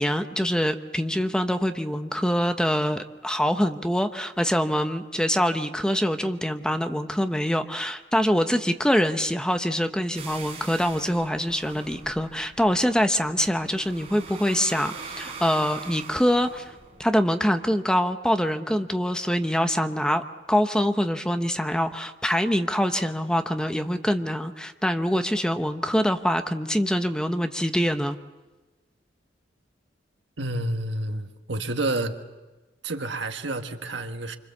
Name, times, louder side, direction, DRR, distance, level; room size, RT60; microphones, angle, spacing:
voice 1, 0.0-16.7 17.0-20.2 20.5-28.2, equal, 5° left, 0.9 m, -24 dB
sound 1, 10.1-17.2, right 4 dB, 35° right, 4.5 m, -42 dB
voice 2, 30.4-32.2 32.8-34.4, right 2 dB, 75° right, 1.6 m, -29 dB
27.0 x 25.5 x 7.2 m
head